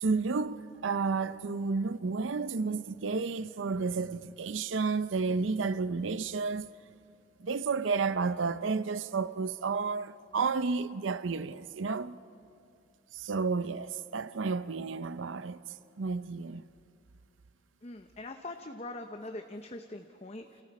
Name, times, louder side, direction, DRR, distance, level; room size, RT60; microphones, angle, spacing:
voice 1, 0.0-6.7 7.4-12.2 13.1-15.6 16.0-16.6, right 4 dB, 80° right, 0.6 m, -31 dB
voice 2, 17.8-20.6, left 2 dB, 35° left, 0.8 m, -42 dB
29.5 x 28.5 x 4.2 m
head